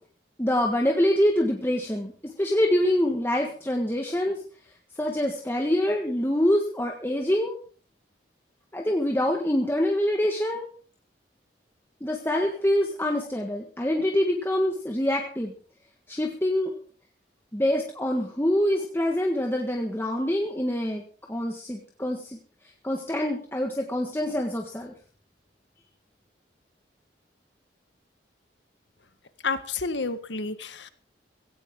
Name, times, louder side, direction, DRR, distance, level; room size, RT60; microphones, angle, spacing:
voice 1, 0.4-4.4 5.0-7.5 8.7-10.7 12.0-15.5 16.1-16.7 17.5-21.0 21.3-22.4 22.8-24.9, left 1 dB, 15° left, 1 dB, 1.6 m, -25 dB
voice 2, 29.4-30.9, left 4 dB, 80° left, 11 dB, 1.6 m, -30 dB
16.5 x 16.5 x 3.8 m, 0.42 s
head